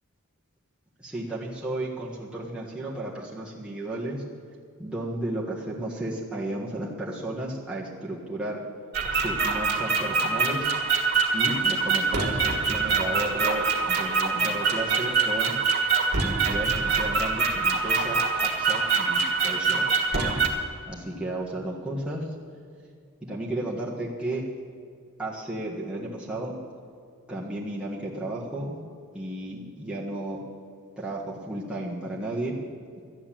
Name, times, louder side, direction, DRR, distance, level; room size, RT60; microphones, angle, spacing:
voice 1, 1.0-4.2 4.8-8.6 9.1-10.7 11.3-15.5 16.2-19.9 20.9-22.3 23.2-24.5 25.2-26.5 27.3-28.8 29.1-30.4 31.0-32.6, right 1 dB, 5° right, -6 dB, 1.5 m, -33 dB
sound 1, 8.9-20.5, right 4 dB, 45° right, 1.6 m, -24 dB
13.5 x 9.3 x 7.5 m, 2.3 s
head